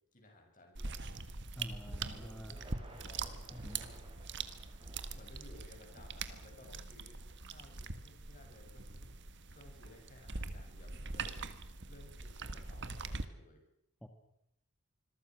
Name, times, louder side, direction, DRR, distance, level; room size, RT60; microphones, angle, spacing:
voice 1, 0.1-1.0 1.7-3.6 5.1-7.2 7.4-9.2 9.5-11.6 11.9-13.6, left 1 dB, 40° left, 2 dB, 7.5 m, -58 dB
sound 1, 0.7-13.2, right 4 dB, 55° right, 1.6 m, -43 dB
voice 2, 1.6-2.6 3.5-3.9 14.0-14.1, equal, 5° left, 3 dB, 2.0 m, -47 dB
sound 2, 2.5-9.9, right 1 dB, 25° right, 4.7 m, -59 dB
26.5 x 22.5 x 6.4 m, 0.77 s
head